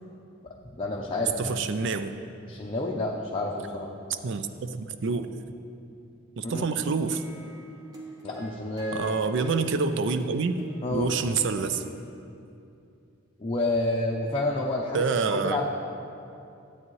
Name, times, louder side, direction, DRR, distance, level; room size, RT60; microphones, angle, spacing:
voice 1, 0.4-1.5 2.5-3.9 6.4-6.6 8.2-9.1 10.8-11.1 13.4-15.7, left 2 dB, 25° left, -3 dB, 0.6 m, -29 dB
voice 2, 1.4-2.2 4.1-5.4 6.4-7.2 8.9-10.5 10.9-11.8 14.9-15.7, right 4 dB, 60° right, 10 dB, 0.4 m, -27 dB
sound 1, 6.4-11.7, equal, 20° right, 1.2 m, -44 dB
12.5 x 8.4 x 3.1 m, 2.7 s
head